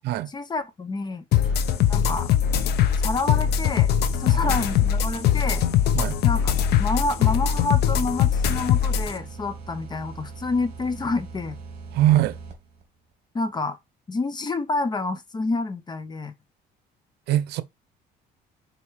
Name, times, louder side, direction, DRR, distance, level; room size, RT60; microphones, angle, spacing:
voice 1, 0.3-1.2 1.9-2.3 3.0-3.9 4.2-5.6 6.2-6.5 6.8-11.6 13.3-13.8 14.1-16.3, left 3 dB, 25° left, 0.9 m, -28 dB
sound 1, 1.3-9.1, left 9 dB, 75° left, 0.9 m, -21 dB
sound 2, 1.4-12.8, right 4 dB, 45° right, 2.6 m, -40 dB
voice 2, 11.9-12.4 17.3-17.6, right 14 dB, 80° right, 0.7 m, -22 dB
5.5 x 4.5 x 4.6 m
cardioid pair, 110°, 17 cm